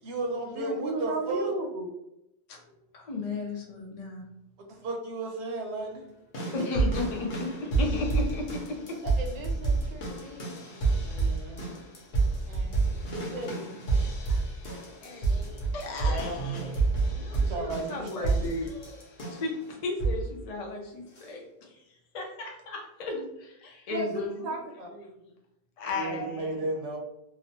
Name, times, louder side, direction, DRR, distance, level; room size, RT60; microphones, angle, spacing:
voice 1, 0.0-1.5 4.6-6.0 11.0-11.8 17.3-18.5 25.9-27.0, right 2 dB, 90° right, 2 dB, 1.0 m, -34 dB
voice 2, 0.5-1.9 6.4-6.7 9.0-10.6 12.4-13.8 23.9-24.1 24.4-24.9, right 2 dB, 50° right, 2 dB, 0.6 m, -35 dB
voice 3, 2.9-4.2 6.5-7.3 7.6-8.6 14.3-14.4 15.0-19.0 19.3-21.8 22.1-24.5 24.9-25.1 25.8-26.5, left 3 dB, 50° left, 1 dB, 0.5 m, -35 dB
sound 1, 6.3-19.6 20.0-20.4 21.2-21.3, right 3 dB, 70° left, 1.0 m, -29 dB
2.9 x 2.0 x 2.8 m, 0.84 s
omnidirectional pair, 1.1 m